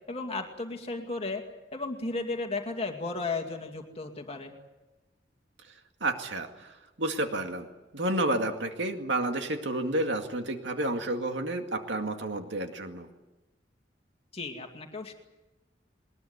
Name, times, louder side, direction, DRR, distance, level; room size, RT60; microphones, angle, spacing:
voice 1, 0.1-1.4 1.7-4.5 14.3-15.1, left 3 dB, 35° left, 4 dB, 2.3 m, -34 dB
voice 2, 6.0-6.7 7.0-7.7 7.9-13.1, right 1 dB, 80° right, 5 dB, 2.1 m, -30 dB
21.0 x 20.5 x 9.7 m, 1.1 s
head